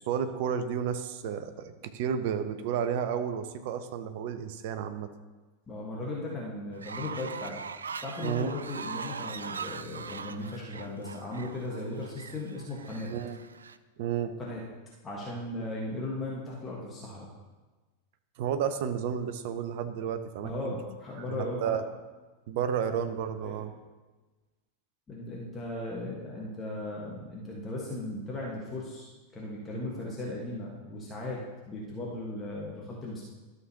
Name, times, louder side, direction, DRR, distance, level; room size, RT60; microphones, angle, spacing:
voice 1, 0.0-5.1 8.2-8.5 13.1-13.4 14.0-14.4 15.6-15.7 18.4-20.7 21.3-21.8 22.5-23.7, right 8 dB, 50° right, 9 dB, 0.7 m, -32 dB
voice 2, 5.7-7.6 8.0-13.1 14.4-14.6 15.0-17.3 20.4-21.7 23.4-23.6 25.1-33.3, left 2 dB, 20° left, -4 dB, 1.6 m, -37 dB
Fowl, 6.7-13.8, right 5 dB, 70° right, 0.3 m, -41 dB
12.5 x 6.6 x 3.0 m, 1.3 s
figure-of-eight pair, 90°, 0 cm